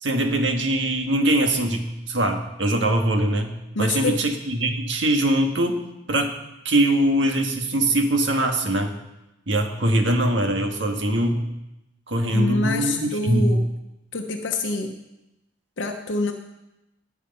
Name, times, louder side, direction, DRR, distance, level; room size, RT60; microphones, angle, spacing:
voice 1, 0.0-5.8 6.1-6.3 6.6-8.9 9.5-11.4 12.1-13.5, right 1 dB, 70° right, 4 dB, 1.6 m, -22 dB
voice 2, 3.7-4.2 12.3-13.6 14.1-15.0 15.8-16.3, left 2 dB, 75° left, 3 dB, 0.9 m, -26 dB
18.5 x 6.6 x 5.4 m, 0.92 s
head